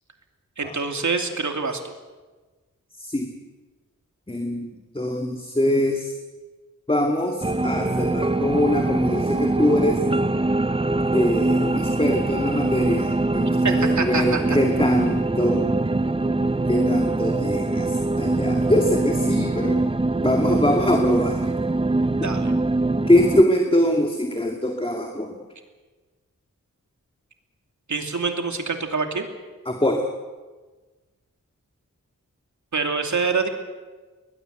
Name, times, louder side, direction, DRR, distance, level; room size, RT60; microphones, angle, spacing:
voice 1, 0.6-1.8 13.6-14.6 22.2-22.5 27.9-29.3 32.7-33.5, right 4 dB, 65° right, 5 dB, 2.8 m, -25 dB
voice 2, 3.0-3.3 4.3-6.1 6.9-10.0 11.1-15.7 16.7-19.8 20.2-21.5 22.2-22.3 23.1-25.4 29.7-30.0, left 1 dB, 15° left, 3 dB, 2.2 m, -23 dB
sound 1, 7.4-23.4, right 2 dB, 15° right, 0.7 m, -23 dB
21.0 x 20.0 x 8.0 m, 1.3 s
wide cardioid pair, 85°, 31 cm